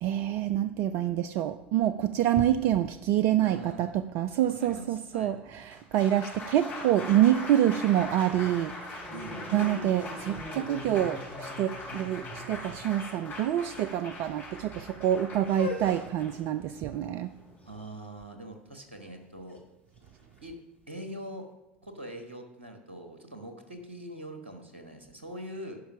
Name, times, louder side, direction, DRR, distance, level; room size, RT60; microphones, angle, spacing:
voice 1, 0.0-8.7 9.5-17.3, right 11 dB, 50° right, 11 dB, 0.4 m, -27 dB
voice 2, 3.4-3.9 4.6-5.4 9.1-9.8 17.6-19.6 20.4-20.5 20.9-21.5 21.8-25.8, right 1 dB, 80° right, 6 dB, 1.2 m, -43 dB
Applause, 5.6-17.8, left 2 dB, 30° left, 3.1 m, -41 dB
sound 1, 15.4-21.3, left 5 dB, 85° left, 1.5 m, -43 dB
10.0 x 5.6 x 6.0 m, 1.0 s
figure-of-eight pair, 70°, 6 cm